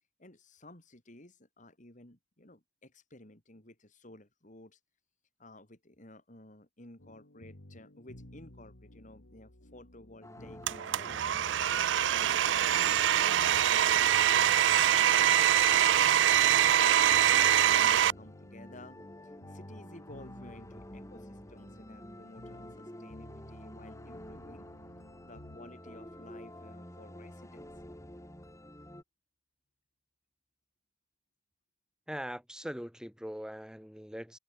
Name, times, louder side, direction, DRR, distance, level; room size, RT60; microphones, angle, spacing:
voice 1, 0.2-4.8 5.4-11.5 11.8-15.5 16.0-19.0 19.2-24.7 25.2-27.7, left 1 dB, 45° left, 3.7 m, -54 dB
sound 1, 7.0-25.6, left 1 dB, 90° left, 2.7 m, -54 dB
sound 2, 10.2-29.0, left 1 dB, 15° left, 6.0 m, -49 dB
Domestic sounds home sounds, 10.7-18.1, right 10 dB, 85° right, 0.4 m, -24 dB
voice 2, 32.1-34.4, equal, 5° right, 6.1 m, -41 dB
head